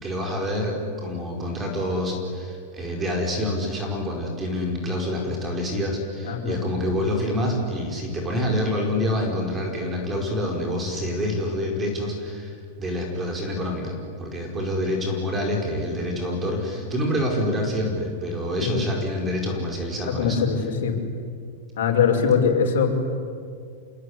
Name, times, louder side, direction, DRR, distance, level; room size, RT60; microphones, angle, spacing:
voice 1, 0.0-20.4, left 1 dB, 15° right, 1 dB, 4.9 m, -27 dB
voice 2, 6.2-6.7 18.6-18.8 20.0-21.0 21.8-22.9, left 6 dB, 80° left, 2 dB, 5.6 m, -22 dB
27.5 x 20.5 x 9.8 m, 2.2 s
supercardioid pair, 160°, 0 cm